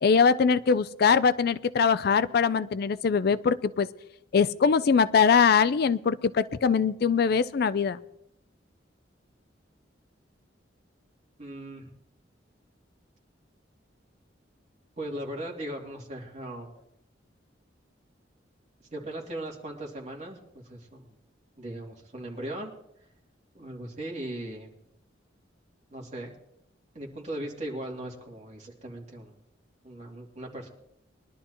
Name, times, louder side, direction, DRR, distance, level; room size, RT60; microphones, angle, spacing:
voice 1, 0.0-3.9 4.3-8.0, left 6 dB, 55° left, 15 dB, 0.4 m, -22 dB
voice 2, 11.4-11.9 15.0-16.7 18.9-21.1 21.6-22.7 23.5-24.7 25.9-26.3 26.9-29.3 29.8-30.7, right 1 dB, 40° right, -1 dB, 2.6 m, -38 dB
22.0 x 11.5 x 3.0 m, 0.80 s
head